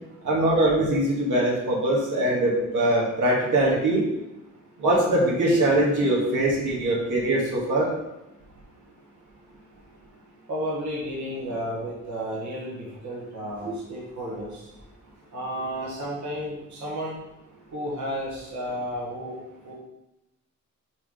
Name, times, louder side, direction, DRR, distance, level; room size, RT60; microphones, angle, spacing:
voice 1, 0.2-4.1 4.8-7.9, right 1 dB, 90° right, -4 dB, 1.8 m, -22 dB
voice 2, 10.5-14.6 15.3-17.1 17.7-19.4 19.6-19.7, equal, 75° right, -5 dB, 1.7 m, -32 dB
4.8 x 4.7 x 5.0 m, 0.91 s
wide cardioid pair, 125°, 30 cm